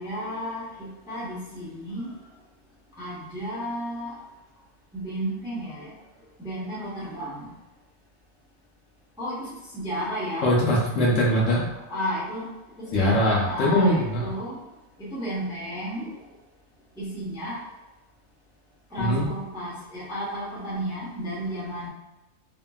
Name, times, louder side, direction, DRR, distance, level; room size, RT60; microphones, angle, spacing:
voice 1, 0.0-2.1 3.0-4.1 4.9-5.9 6.4-7.5 9.2-9.5 9.7-10.5 11.7-12.5 12.8-14.6 15.0-16.2 17.0-17.6 18.9-21.9, equal, 5° right, -8 dB, 0.5 m, -32 dB
voice 2, 10.4-11.7 12.9-14.3 19.0-19.2, left 1 dB, 65° left, -5 dB, 1.0 m, -21 dB
2.8 x 2.6 x 2.2 m, 0.98 s
omnidirectional pair, 1.6 m